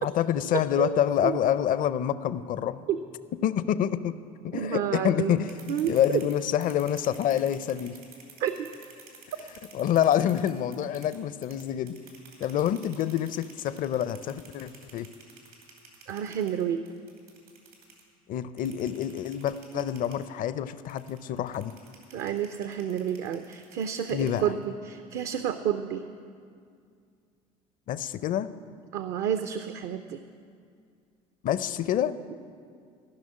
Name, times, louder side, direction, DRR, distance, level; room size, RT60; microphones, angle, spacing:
voice 1, 0.0-2.8 3.4-4.1 4.4-8.0 9.7-12.0 12.4-15.1 18.3-21.7 24.1-24.4 27.9-28.5 31.4-32.2, left 10 dB, 50° left, 15 dB, 0.5 m, -27 dB
voice 2, 0.8-1.4 2.9-3.0 4.5-5.4 5.7-6.2 8.4-8.7 16.1-16.8 19.7-19.9 22.1-26.0 28.9-30.2 32.3-32.4, right 9 dB, 60° right, 9 dB, 0.6 m, -30 dB
sound 1, 5.3-11.2 11.4-18.0 18.6-20.2 20.9-24.6, right 6 dB, 85° right, 2.8 m, -50 dB
14.5 x 6.2 x 9.7 m, 2.2 s
hypercardioid pair, 65°, 18 cm